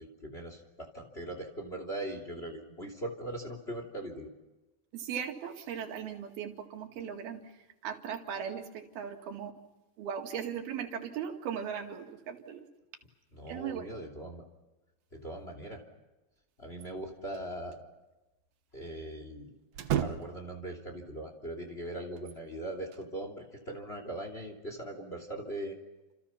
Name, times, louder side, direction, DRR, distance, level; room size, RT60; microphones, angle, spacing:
voice 1, 0.0-4.3 13.3-14.4 15.1-15.8 16.6-17.8 18.7-19.5 20.0-25.8, right 1 dB, 15° left, 3 dB, 2.9 m, -40 dB
voice 2, 4.9-7.4 7.8-9.5 10.0-12.7 13.5-13.9, right 8 dB, 85° right, 4 dB, 4.1 m, -38 dB
sound 1, 16.8-17.5 17.7-17.8 19.7-20.6 22.2-23.1, right 10 dB, 65° right, 1.7 m, -35 dB
30.0 x 28.0 x 5.8 m, 1.1 s
omnidirectional pair, 4.2 m